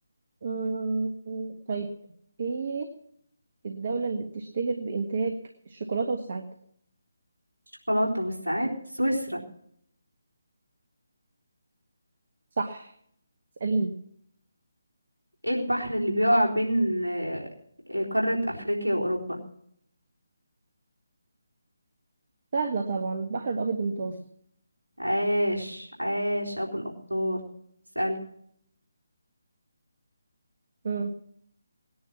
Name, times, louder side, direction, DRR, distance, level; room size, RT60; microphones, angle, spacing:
voice 1, 0.4-1.9 2.4-2.9 3.6-5.4 5.7-6.4 12.6-12.9 13.6-13.9 22.5-24.2 30.8-31.1, right 4 dB, 45° right, 5 dB, 1.6 m, -29 dB
voice 2, 7.9-9.4 15.4-17.5 17.9-19.4 25.0-26.8 27.1-27.4 28.0-28.2, equal, 80° right, -2 dB, 4.0 m, -26 dB
19.5 x 10.5 x 6.0 m, 0.68 s
figure-of-eight pair, 150°, 0 cm